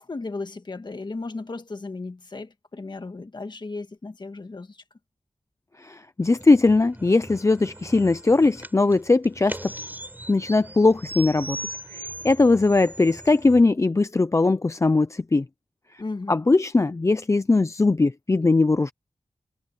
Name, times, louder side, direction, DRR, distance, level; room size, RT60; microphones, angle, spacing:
voice 1, 0.0-4.8 16.0-16.4, left 3 dB, 45° left, 1.7 m, -35 dB
voice 2, 5.8-9.7 10.3-11.6 11.9-15.4 16.3-18.9, left 3 dB, 25° left, 0.5 m, -20 dB
sound 1, 6.2-13.6, right 1 dB, 15° right, 7.4 m, -39 dB
wide cardioid pair, 105°, 11 cm